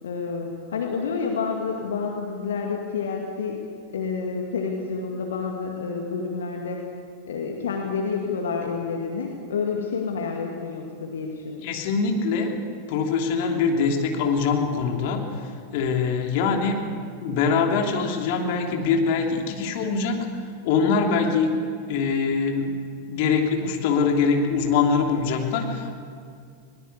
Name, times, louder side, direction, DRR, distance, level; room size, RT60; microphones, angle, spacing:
voice 1, 0.0-3.6 3.9-6.8 7.3-11.7, left 5 dB, 65° left, 1 dB, 2.2 m, -29 dB
voice 2, 11.6-12.5 12.9-15.2 15.7-16.8 17.2-20.3 20.6-21.5 21.9-22.8 23.1-25.9, left 5 dB, 50° left, 2 dB, 3.0 m, -23 dB
22.0 x 19.0 x 8.3 m, 2.2 s
figure-of-eight pair, 90°, 0 cm